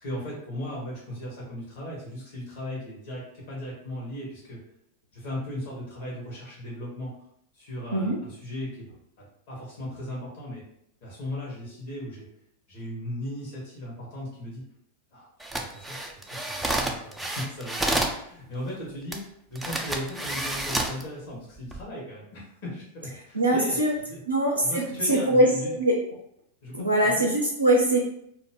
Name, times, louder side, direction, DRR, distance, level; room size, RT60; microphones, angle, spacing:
voice 1, 0.0-4.6 5.1-7.1 7.5-8.9 9.2-10.6 11.0-12.3 12.7-14.6 15.1-19.2 19.5-23.8 24.1-24.2 24.6-25.7 26.6-27.2, left 1 dB, 50° left, -5 dB, 1.0 m, -37 dB
sound 1, 15.4-18.2 19.1-19.2 19.6-21.0 21.6-21.8, right 1 dB, 5° right, 0.4 m, -29 dB
voice 2, 23.3-23.9 24.3-24.8 25.1-26.0 26.7-28.0, right 1 dB, 80° right, -2 dB, 0.5 m, -22 dB
2.4 x 2.0 x 3.5 m, 0.72 s
figure-of-eight pair, 90°, 0 cm